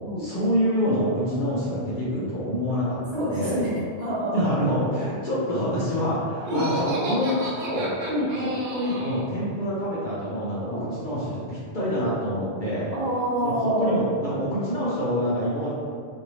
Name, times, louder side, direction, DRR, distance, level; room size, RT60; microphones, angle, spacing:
voice 1, 0.2-3.6 4.3-8.0 8.3-12.9 13.4-15.7, equal, 50° left, -9 dB, 0.8 m, -26 dB
voice 2, 3.1-4.4 6.4-6.6 8.1-8.3 10.7-10.9 12.9-13.9, right 1 dB, 40° right, -8 dB, 1.0 m, -27 dB
Laughter, 6.4-9.3, right 2 dB, 75° right, 0.9 m, -32 dB
4.3 x 2.6 x 3.1 m, 2.2 s
omnidirectional pair, 1.2 m